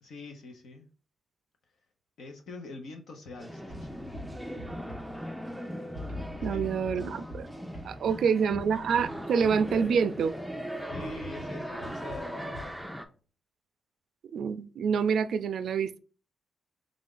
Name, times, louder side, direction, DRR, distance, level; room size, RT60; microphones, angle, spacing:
voice 1, 0.0-0.9 2.2-4.2 6.5-6.7 8.0-8.3 10.9-12.7, left 3 dB, 75° left, 0.9 m, -45 dB
sound 1, 3.4-13.0, equal, ahead, 0.4 m, -39 dB
sound 2, 3.7-5.6 5.9-10.4 10.9-12.8, left 2 dB, 55° left, 1.3 m, -44 dB
voice 2, 6.4-7.5 7.8-10.3 14.3-16.0, right 6 dB, 70° right, 0.3 m, -27 dB
3.6 x 2.5 x 3.7 m
cardioid pair, 125°, 0 cm